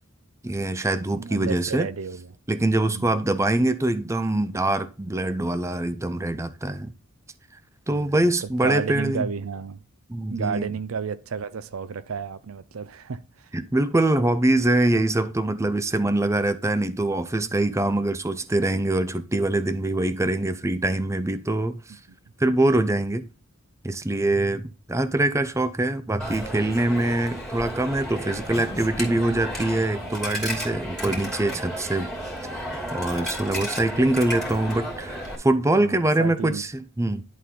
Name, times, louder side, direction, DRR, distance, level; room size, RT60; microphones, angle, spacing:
voice 1, 0.4-1.9 2.5-6.9 7.9-9.3 10.1-10.7 13.5-21.8 22.4-23.3 23.8-32.1 32.9-37.2, right 1 dB, 15° right, 0.5 m, -24 dB
voice 2, 1.1-2.3 2.9-3.1 7.9-9.8 10.3-13.5 35.8-36.6, right 6 dB, 80° right, 0.6 m, -32 dB
Coin (dropping), 26.2-35.4, equal, ahead, 2.9 m, -33 dB
11.0 x 4.2 x 3.7 m
head